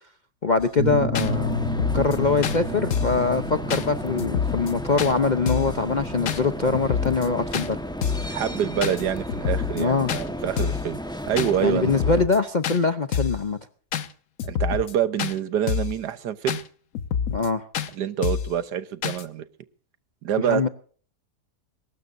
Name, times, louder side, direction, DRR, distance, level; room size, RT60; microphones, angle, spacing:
voice 1, 0.4-1.6 1.9-7.8 9.8-10.1 11.6-13.6 17.3-17.6 20.5-20.7, left 4 dB, 45° left, 0.6 m, -23 dB
sound 1, 0.6-0.7 1.1-1.3 1.6-2.2 2.4-2.6 2.9-3.2 3.7-3.9 4.2-4.7 5.0-5.1 5.5-5.8 6.3-6.4 6.7-7.3 7.5-7.7 8.0-8.3 8.8-9.0 9.3-9.8 10.1-10.2 10.6-10.9 11.4-11.5 11.8-12.4 12.6-12.8 13.1-13.4 13.9-14.1 14.4-14.9 15.2-15.3 15.7-16.0 16.5-16.6 16.9-17.5 17.7-17.9 18.2-18.5 19.0-19.2, left 7 dB, 60° left, 1.3 m, -27 dB
sound 2, 0.8-10.2, left 1 dB, 50° right, 5.3 m, -32 dB
sound 3, 1.2-12.3, equal, 5° left, 1.1 m, -34 dB
voice 2, 8.3-11.0 11.3-11.9 14.4-16.6 17.9-19.4 20.2-20.6, right 9 dB, 80° right, 1.6 m, -26 dB
22.0 x 19.0 x 2.6 m
omnidirectional pair, 1.8 m